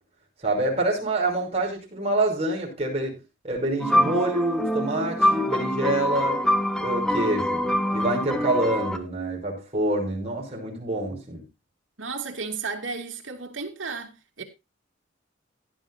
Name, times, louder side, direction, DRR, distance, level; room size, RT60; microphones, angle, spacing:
voice 1, 0.4-6.4 6.8-11.4, right 1 dB, 35° right, 5.8 m, -26 dB
sound 1, 3.8-9.0, equal, 5° left, 1.3 m, -25 dB
voice 2, 12.0-14.4, right 4 dB, 85° right, 2.6 m, -33 dB
16.5 x 10.5 x 2.7 m
head